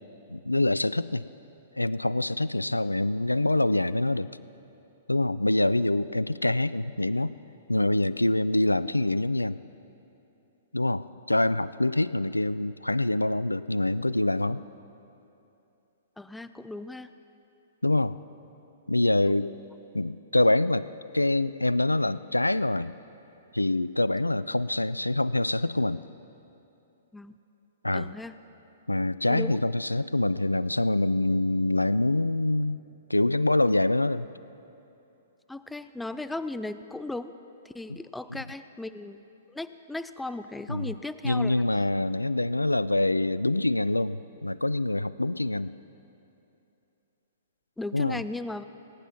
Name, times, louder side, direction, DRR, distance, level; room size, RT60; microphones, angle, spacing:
voice 1, 0.3-1.2 1.8-4.3 5.1-7.4 7.7-9.6 10.7-14.6 17.8-18.1 18.9-19.5 19.9-20.9 21.1-23.0 23.5-26.0 27.8-28.1 28.9-32.8 33.1-34.3 37.9-38.0 38.3-38.4 40.7-40.9 41.2-45.7 47.9-48.2, left 2 dB, 85° left, 17 dB, 0.3 m, -25 dB
voice 2, 16.2-17.1 19.3-19.4 27.1-27.4 27.9-28.3 29.3-29.6 35.5-37.3 37.7-39.2 39.5-41.6 47.8-48.6, left 2 dB, 5° left, 12 dB, 0.4 m, -36 dB
18.5 x 9.3 x 5.8 m, 2.9 s
figure-of-eight pair, 110°, 0 cm